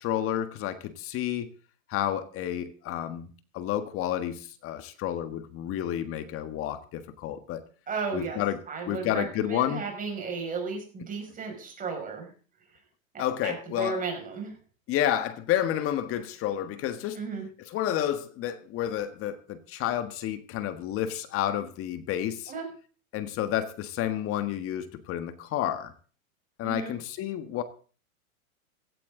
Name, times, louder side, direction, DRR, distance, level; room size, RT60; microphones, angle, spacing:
voice 1, 0.0-1.5 1.9-3.3 3.5-7.6 8.1-9.8 13.2-14.0 14.9-17.2 17.7-22.5 23.1-25.9 26.6-27.6, left 11 dB, 30° left, 11 dB, 1.5 m, -30 dB
voice 2, 7.9-8.4 8.7-12.3 13.1-14.5 17.2-17.5 22.5-22.7 26.6-26.9, right 5 dB, 20° right, 3 dB, 6.0 m, -34 dB
16.5 x 13.5 x 3.8 m, 0.38 s
hypercardioid pair, 125°, 42 cm